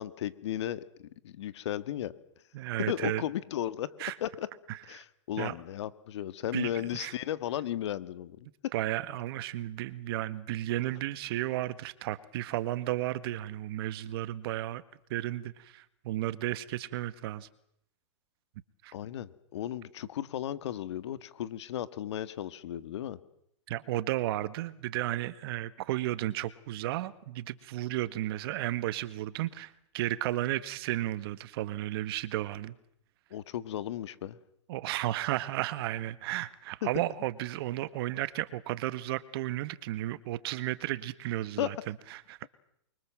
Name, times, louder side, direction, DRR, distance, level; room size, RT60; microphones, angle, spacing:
voice 1, 0.0-2.1 2.9-3.9 4.2-4.5 4.9-8.7 18.9-23.2 33.3-34.4 36.8-36.9 41.6-41.7, left 11 dB, 65° left, 15 dB, 1.9 m, -35 dB
voice 2, 2.5-3.2 4.0-4.1 4.7-5.0 5.4-5.5 6.5-7.1 8.7-14.8 15.1-17.5 18.8-18.9 23.7-32.7 34.7-42.4, right 15 dB, 50° right, 15 dB, 1.7 m, -33 dB
28.0 x 24.0 x 7.7 m, 0.74 s
hypercardioid pair, 135°, 16 cm